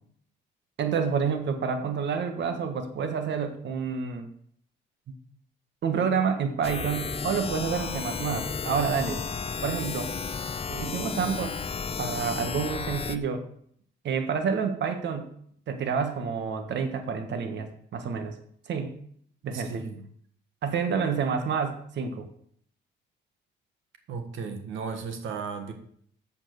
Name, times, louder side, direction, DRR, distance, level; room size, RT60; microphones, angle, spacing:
voice 1, 0.8-4.3 5.1-5.2 5.8-9.2 9.6-10.1 10.7-11.6 12.0-13.4 14.0-15.3 15.7-18.4 18.7-18.9 19.4-19.8 20.6-22.3, right 6 dB, 65° right, 7 dB, 1.4 m, -28 dB
sound 1, 6.6-13.2, left 5 dB, 30° left, 0.6 m, -33 dB
voice 2, 19.5-20.1 24.1-25.7, right 5 dB, 80° right, 7 dB, 1.5 m, -35 dB
7.6 x 7.2 x 6.6 m, 0.64 s
cardioid pair, 90°, 20 cm